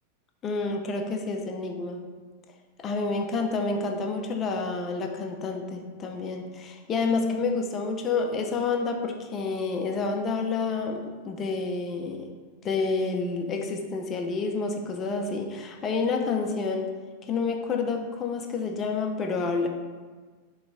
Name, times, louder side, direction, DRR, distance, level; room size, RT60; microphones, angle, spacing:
voice 1, 0.4-2.1 2.8-12.3 12.6-16.9 17.2-19.7, left 4 dB, 25° left, 4 dB, 0.4 m, -29 dB
3.8 x 2.2 x 3.4 m, 1.4 s
figure-of-eight pair, 90°, 0 cm